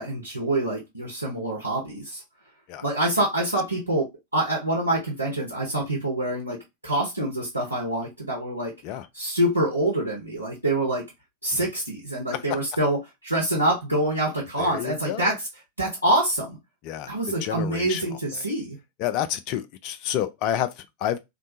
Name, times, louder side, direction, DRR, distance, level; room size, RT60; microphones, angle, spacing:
voice 1, 0.0-2.2 2.8-6.6 6.8-8.7 9.1-11.0 11.4-13.0 13.2-15.3 15.8-16.6 17.1-18.8, right 1 dB, 85° right, 0.9 m, -26 dB
voice 2, 14.6-15.4 16.8-18.2 19.0-21.2, left 11 dB, 45° left, 0.4 m, -29 dB
2.6 x 2.2 x 2.6 m
figure-of-eight pair, 90°, 0 cm